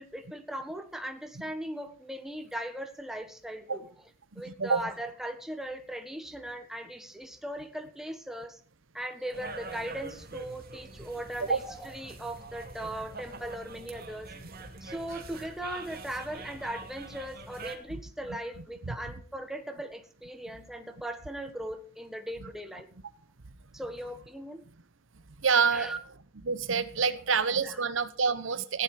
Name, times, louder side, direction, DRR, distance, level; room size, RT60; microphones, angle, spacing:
voice 1, 0.0-3.8 4.3-8.6 8.9-14.3 14.8-22.9 23.7-24.6 25.7-26.0 27.3-27.8, right 1 dB, ahead, 6 dB, 1.5 m, -39 dB
voice 2, 4.3-4.8 11.4-11.6 18.9-19.0 22.4-22.5 25.4-25.9 26.4-28.8, right 5 dB, 65° right, 13 dB, 0.9 m, -27 dB
sound 1, 9.3-17.8, right 3 dB, 45° right, 2.4 m, -44 dB
16.0 x 10.5 x 5.0 m, 0.41 s
head